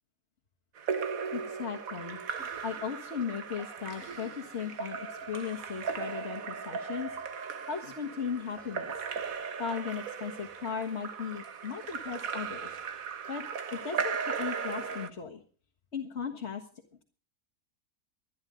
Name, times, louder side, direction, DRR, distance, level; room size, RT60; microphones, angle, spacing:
Splash splatter / Drip / Trickle dribble, 0.8-15.1, right 6 dB, 65° right, 1.5 m, -37 dB
voice 1, 1.3-2.2 2.6-7.2 7.4-8.9 9.6-12.8 13.3-13.5 13.7-15.4 15.9-16.7, left 6 dB, 45° left, -1 dB, 1.8 m, -37 dB
Cough, 2.3-3.1 3.4-3.5 3.9-5.4 6.1-6.4 6.7-6.8 7.1-7.2 8.5-9.7, right 3 dB, 45° right, 7.8 m, -54 dB
24.5 x 11.0 x 3.8 m, 0.42 s
omnidirectional pair, 1.6 m